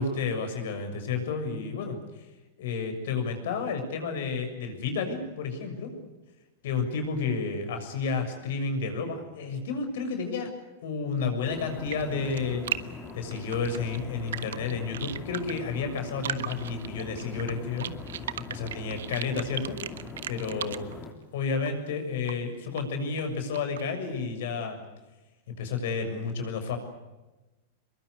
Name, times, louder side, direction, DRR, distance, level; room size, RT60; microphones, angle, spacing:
voice 1, 0.0-2.0 2.6-5.9 6.6-10.5 10.8-12.6 13.1-17.9 18.5-19.8 20.3-20.9 21.3-24.8 25.5-26.8, left 4 dB, 70° left, 6 dB, 6.8 m, -31 dB
sound 1, 11.4-21.1, left 4 dB, 20° left, 4.4 m, -42 dB
sound 2, 11.7-12.8 13.1-15.6 16.0-20.9 21.7-21.8 22.3-22.4 22.8-22.9 23.2-23.8, right 10 dB, 90° right, 1.3 m, -36 dB
23.0 x 22.5 x 9.6 m, 1.1 s
supercardioid pair, 135°, 0 cm